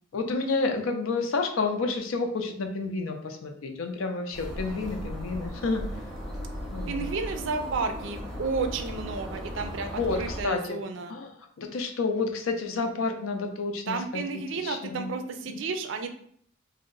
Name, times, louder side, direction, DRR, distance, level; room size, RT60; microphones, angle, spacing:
voice 1, 0.1-5.9 6.7-7.0 10.0-10.8 11.1-11.3 11.6-15.1 15.5-15.6, left 3 dB, 85° left, 5 dB, 0.5 m, -30 dB
sound 1, 4.3-10.4, equal, ahead, 0.6 m, -37 dB
voice 2, 6.9-11.2 13.9-16.1, right 4 dB, 65° right, 7 dB, 0.4 m, -32 dB
2.7 x 2.1 x 3.7 m, 0.63 s
head